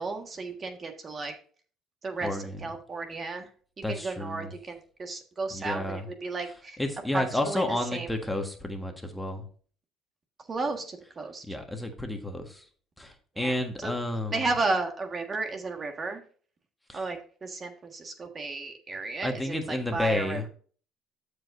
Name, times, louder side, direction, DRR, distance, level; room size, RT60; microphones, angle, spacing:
voice 1, 0.0-1.3 2.0-2.3 2.6-3.5 3.9-6.8 7.1-7.6 7.9-8.1 10.5-11.4 13.4-13.5 13.8-13.9 14.3-16.2 16.9-20.5, right 3 dB, 35° right, 5 dB, 1.6 m, -33 dB
voice 2, 2.2-2.6 3.8-4.5 5.5-6.1 6.8-9.4 11.4-12.6 13.0-14.4 16.9-17.0 19.2-20.5, left 1 dB, 5° left, 4 dB, 1.5 m, -31 dB
13.5 x 5.0 x 2.6 m, 0.43 s
supercardioid pair, 80°, 0 cm